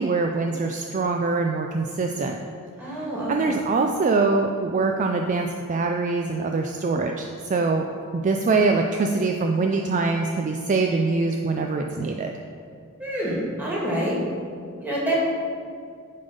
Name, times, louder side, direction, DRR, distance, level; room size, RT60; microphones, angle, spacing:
voice 1, 0.0-2.4 3.3-7.8 8.1-12.3, right 3 dB, 35° right, 3 dB, 0.3 m, -23 dB
voice 2, 2.8-3.6 13.0-14.2 14.8-15.1, right 1 dB, 10° right, -6 dB, 1.9 m, -27 dB
10.5 x 3.6 x 5.3 m, 2.3 s
head